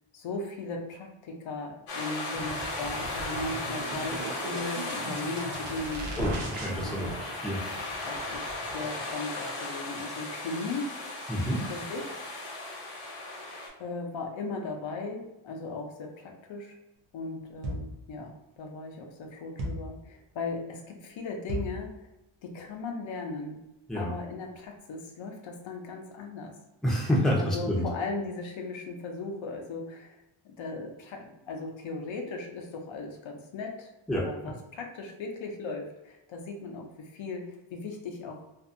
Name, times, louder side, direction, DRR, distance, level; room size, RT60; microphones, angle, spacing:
voice 1, 0.1-6.2 6.8-7.1 8.0-10.9 11.7-12.2 13.8-16.8 17.1-22.1 22.4-23.6 23.9-26.6 27.4-30.2 30.4-38.5, left 3 dB, 65° left, 2 dB, 0.6 m, -37 dB
sound 1, 1.9-13.7, left 2 dB, 85° left, 1.0 m, -36 dB
sound 2, 2.3-9.1, right 1 dB, 55° right, 0.7 m, -39 dB
voice 2, 6.2-7.6 11.3-11.7 23.9-24.1 26.8-27.9 34.1-34.5, equal, ahead, -3 dB, 0.6 m, -28 dB
sound 3, 17.6-18.1 19.6-20.0 21.5-21.9, equal, 90° right, 0.8 m, -34 dB
2.6 x 2.4 x 2.5 m, 0.97 s
wide cardioid pair, 115°, 50 cm